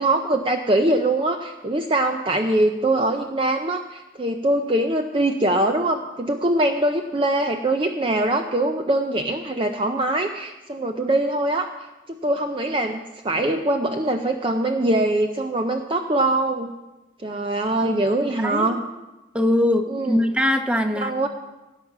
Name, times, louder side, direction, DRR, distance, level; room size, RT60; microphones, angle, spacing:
voice 1, 0.0-11.7 12.1-16.7 17.2-18.8 19.9-20.2 21.0-21.3, right 1 dB, 25° right, 5 dB, 0.5 m, -23 dB
voice 2, 19.3-21.3, left 1 dB, 5° right, 5 dB, 0.9 m, -22 dB
16.5 x 7.3 x 5.9 m, 1.1 s
head